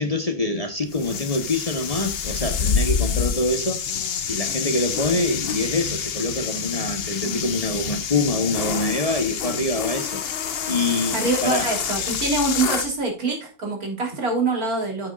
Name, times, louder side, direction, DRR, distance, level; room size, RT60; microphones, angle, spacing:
voice 1, 0.0-3.8 4.3-10.2 10.7-11.7, left 2 dB, 30° left, 1.0 m, -25 dB
sound 1, 0.9-12.9, left 7 dB, 50° left, 0.9 m, -27 dB
voice 2, 11.1-15.1, right 3 dB, 85° right, 3.8 m, -24 dB
9.0 x 8.8 x 2.4 m
omnidirectional pair, 1.5 m